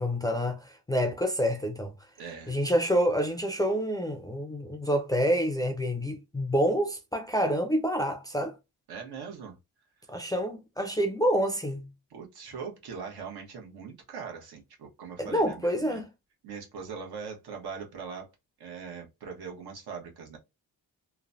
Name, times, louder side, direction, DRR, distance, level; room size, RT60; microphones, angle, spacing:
voice 1, 0.0-1.9 2.5-8.5 10.1-11.9 15.2-16.1, equal, 10° left, 0.4 m, -27 dB
voice 2, 2.2-2.6 8.9-9.5 12.1-16.0 16.4-18.3 18.6-20.4, right 6 dB, 80° right, 1.1 m, -41 dB
3.1 x 2.1 x 2.5 m
cardioid pair, 100°, 38 cm